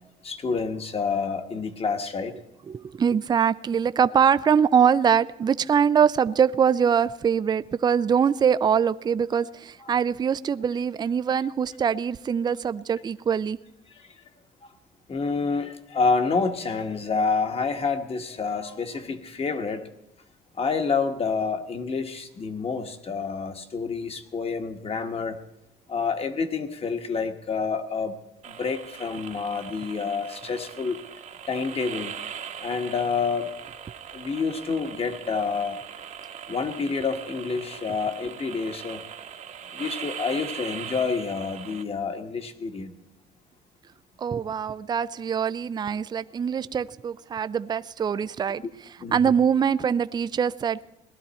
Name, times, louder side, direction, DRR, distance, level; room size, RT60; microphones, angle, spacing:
voice 1, 0.2-2.3 15.1-19.9 20.6-25.4 25.9-28.1 28.5-31.0 31.5-32.1 32.6-33.5 34.1-35.8 36.5-39.0 39.7-42.9 49.0-49.2, left 5 dB, 35° left, 7 dB, 1.5 m, -28 dB
voice 2, 2.7-13.6 44.2-48.6 49.1-50.8, right 7 dB, 25° right, 15 dB, 0.4 m, -23 dB
sound 1, 28.4-41.8, right 8 dB, 45° right, 1.1 m, -40 dB
18.0 x 12.0 x 4.3 m, 0.84 s
cardioid pair, 110°, 17 cm